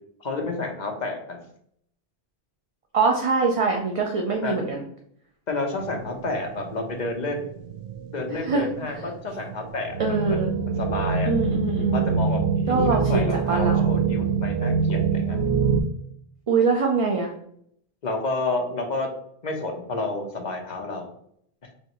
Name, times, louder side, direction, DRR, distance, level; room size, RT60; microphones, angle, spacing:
voice 1, 0.2-1.4 4.4-4.6 5.5-7.5 8.1-10.5 10.8-11.3 11.9-15.5 18.0-19.1 19.4-21.1, left 2 dB, 50° left, 2 dB, 0.9 m, -30 dB
voice 2, 2.9-4.8 8.4-8.6 10.0-10.5 11.3-12.2 12.7-13.9 16.5-17.3, right 4 dB, 45° right, 1 dB, 0.5 m, -23 dB
sound 1, 5.8-15.8, right 5 dB, 80° right, 0.8 m, -25 dB
4.2 x 3.0 x 2.9 m, 0.68 s
omnidirectional pair, 1.0 m